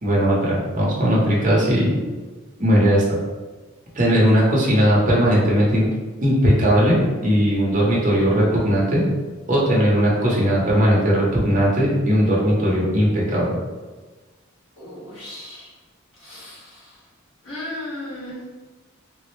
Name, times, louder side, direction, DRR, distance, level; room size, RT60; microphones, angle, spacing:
voice 1, 0.0-2.0 2.6-3.0 3.9-5.9 6.2-9.0 9.5-13.5, equal, 40° right, -5 dB, 0.8 m, -18 dB
voice 2, 14.8-15.7 16.2-17.0 17.4-18.5, left 1 dB, 85° left, -8 dB, 1.3 m, -36 dB
3.4 x 2.1 x 3.1 m, 1.3 s
head